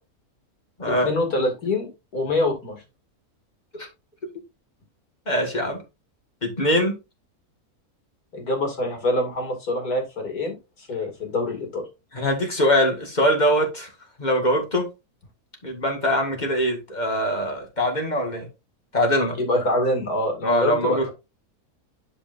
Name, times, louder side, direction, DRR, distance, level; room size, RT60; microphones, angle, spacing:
voice 1, 0.9-2.8 8.3-11.8 19.4-21.1, left 1 dB, 75° left, 3.0 m, -25 dB
voice 2, 5.3-5.8 6.4-7.0 12.1-13.9 14.2-14.9 15.6-18.5 18.9-19.4 20.4-21.1, equal, 30° left, 2.1 m, -22 dB
11.5 x 5.0 x 2.6 m
omnidirectional pair, 1.6 m